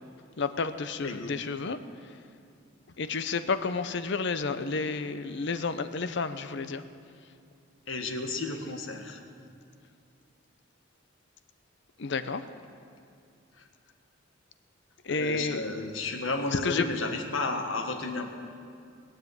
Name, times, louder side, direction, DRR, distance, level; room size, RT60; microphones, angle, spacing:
voice 1, 0.4-1.8 3.0-6.8 12.0-12.4 15.0-15.6 16.5-16.8, left 4 dB, 65° left, 11 dB, 0.7 m, -31 dB
voice 2, 7.9-9.2 15.1-18.3, left 3 dB, 85° left, 4 dB, 1.6 m, -32 dB
20.5 x 7.5 x 9.3 m, 2.4 s
head